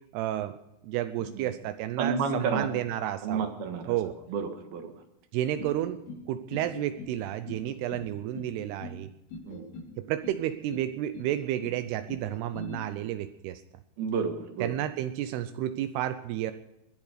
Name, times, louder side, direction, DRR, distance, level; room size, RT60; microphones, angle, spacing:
voice 1, 0.1-0.5 0.8-3.5 3.9-4.1 5.3-6.0 6.3-9.1 10.0-13.6 14.6-16.5, right 12 dB, 85° right, 10 dB, 2.3 m, -31 dB
voice 2, 2.0-2.7 3.2-4.0 4.3-4.9 9.5-9.6 14.0-14.7, right 5 dB, 65° right, 6 dB, 3.0 m, -31 dB
sound 1, 5.6-6.2 6.5-7.1 7.5-8.1 8.3-9.0 9.3-9.9 10.2-10.9 11.1-11.8 12.1-12.8, left 3 dB, 80° left, 6.9 m, -42 dB
21.5 x 11.0 x 5.0 m, 0.90 s
omnidirectional pair, 5.4 m